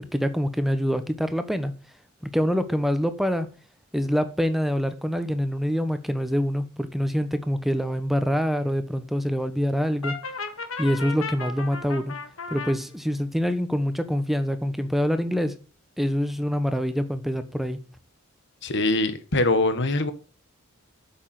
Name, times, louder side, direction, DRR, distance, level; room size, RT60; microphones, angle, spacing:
voice 1, 0.1-1.7 2.2-3.5 3.9-10.1 10.8-12.1 12.5-15.5 16.0-17.8, equal, ahead, 1.1 m, -25 dB
Brass instrument, 10.0-12.7, left 4 dB, 90° left, 1.7 m, -34 dB
voice 2, 18.6-20.1, left 2 dB, 60° left, 1.6 m, -23 dB
8.5 x 7.4 x 7.6 m
head